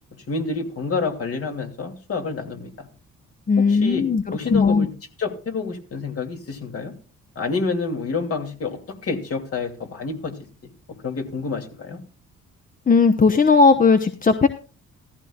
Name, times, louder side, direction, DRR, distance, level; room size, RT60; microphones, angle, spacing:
voice 1, 0.3-2.9 3.7-4.9 5.2-6.9 7.4-10.4 10.9-12.0, left 4 dB, 50° left, 4 dB, 2.7 m, -28 dB
voice 2, 3.5-4.2 4.5-4.9 12.9-14.5, left 4 dB, 25° left, 8 dB, 0.9 m, -16 dB
15.0 x 14.5 x 2.4 m, 0.37 s
cardioid pair, 90°, 30 cm